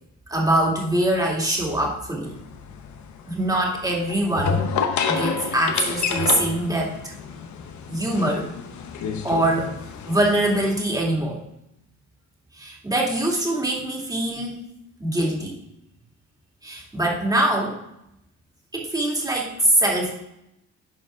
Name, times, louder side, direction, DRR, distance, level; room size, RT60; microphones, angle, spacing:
voice 1, 0.3-2.3 3.3-4.6 5.1-7.1 7.9-8.5 9.2-9.8 10.1-11.4 12.5-14.6 15.0-15.6 16.6-17.8 18.7-20.1, right 1 dB, 10° right, -1 dB, 2.3 m, -23 dB
sound 1, 2.3-10.8, left 6 dB, 70° left, 1.0 m, -29 dB
10.0 x 5.0 x 3.6 m, 0.81 s
cardioid pair, 90°, 30 cm